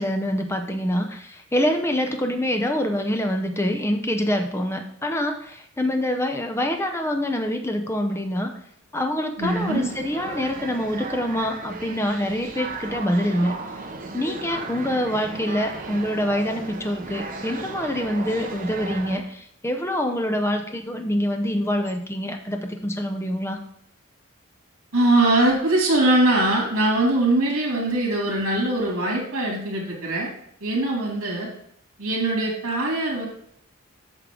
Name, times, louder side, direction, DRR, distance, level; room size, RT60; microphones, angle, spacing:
voice 1, 0.0-8.5 8.9-13.6 14.1-23.6, equal, 10° left, 5 dB, 0.6 m, -25 dB
sound 1, 9.4-19.2, right 3 dB, 40° right, 1.0 m, -35 dB
voice 2, 9.4-9.9 24.9-30.3 30.6-31.5 32.0-33.3, right 2 dB, 75° right, -2 dB, 2.7 m, -22 dB
8.1 x 6.5 x 3.7 m, 0.69 s
head